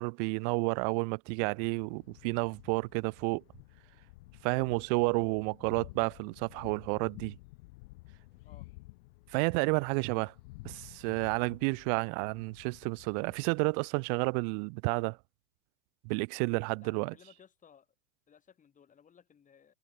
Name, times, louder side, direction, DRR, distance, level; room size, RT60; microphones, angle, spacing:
voice 1, 0.0-3.4 4.4-7.3 9.3-10.3 10.6-15.2 16.0-17.1, right 40 dB or more, 40° right, 0.5 m, -31 dB
Thunder, 1.3-14.6, left 22 dB, 55° left, 5.2 m, -53 dB
voice 2, 16.8-17.9 18.3-19.7, left 7 dB, 20° left, 3.9 m, -59 dB
hypercardioid pair, 95°, 34 cm